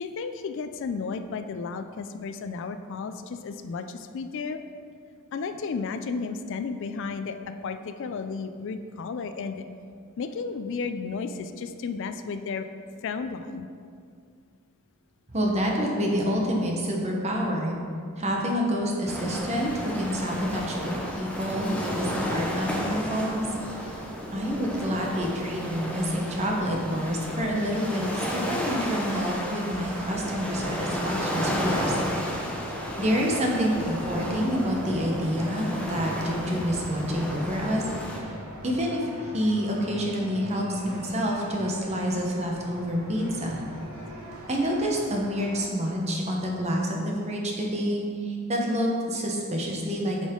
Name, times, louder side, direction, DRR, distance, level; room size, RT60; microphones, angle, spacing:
voice 1, 0.0-4.6 5.3-9.6 10.2-12.7 13.0-13.7, left 4 dB, 55° left, 9 dB, 0.3 m, -33 dB
voice 2, 15.3-17.7 18.2-20.9 21.2-23.5 23.8-24.0 24.3-31.9 33.0-37.8 38.1-38.2 38.6-43.6 44.5-50.3, equal, 30° right, -1 dB, 1.0 m, -28 dB
sound 1, 19.1-38.2, equal, 5° left, 0.8 m, -33 dB
sound 2, 29.9-45.7, right 1 dB, 80° right, 1.3 m, -42 dB
8.8 x 5.2 x 3.8 m, 2.3 s
head